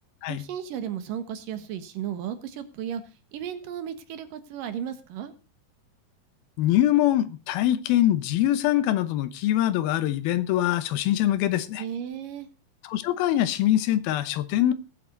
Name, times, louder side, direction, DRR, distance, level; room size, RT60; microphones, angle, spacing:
voice 1, 0.3-3.0 3.3-5.3 11.8-12.5, right 9 dB, 65° right, 2.8 m, -34 dB
voice 2, 6.6-11.8 12.8-14.7, left 13 dB, 75° left, 2.7 m, -23 dB
20.0 x 7.9 x 3.9 m
omnidirectional pair, 4.5 m